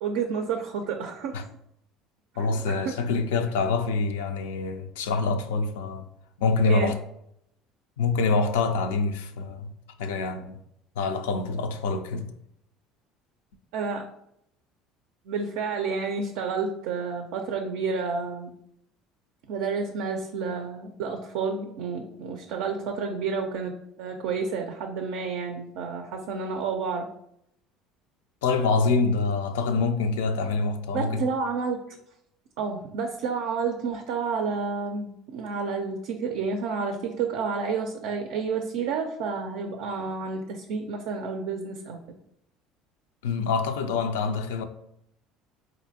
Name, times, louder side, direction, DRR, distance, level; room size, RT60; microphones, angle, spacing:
voice 1, 0.0-1.4 2.4-3.0 6.7-6.9 13.7-14.0 15.3-18.5 19.5-23.7 24.0-27.1 30.9-32.0 32.6-42.0, right 5 dB, 70° right, 0.4 m, -30 dB
voice 2, 2.4-6.1 6.4-7.0 8.0-9.7 10.0-10.6 11.0-12.3 28.4-31.2 43.2-44.6, left 4 dB, 80° left, 0.3 m, -26 dB
4.2 x 2.6 x 2.7 m
hypercardioid pair, 70°, 0 cm